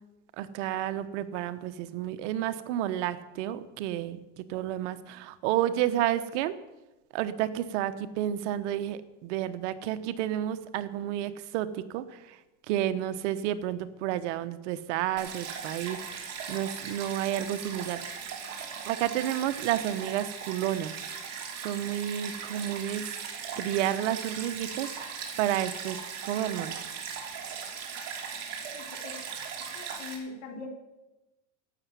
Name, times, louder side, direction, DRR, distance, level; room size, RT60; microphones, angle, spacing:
voice 1, 0.4-6.5 7.1-12.4 12.7-18.0 18.9-20.9 21.3-23.1 23.6-26.0 26.2-26.9, right 12 dB, 65° right, 12 dB, 1.0 m, -31 dB
Stream, 15.2-30.2, right 6 dB, 40° right, 3.3 m, -38 dB
voice 2, 28.7-29.1 29.6-30.7, left 4 dB, 50° left, 2 dB, 3.4 m, -42 dB
12.0 x 8.2 x 9.2 m, 1.0 s
supercardioid pair, 140°, 39 cm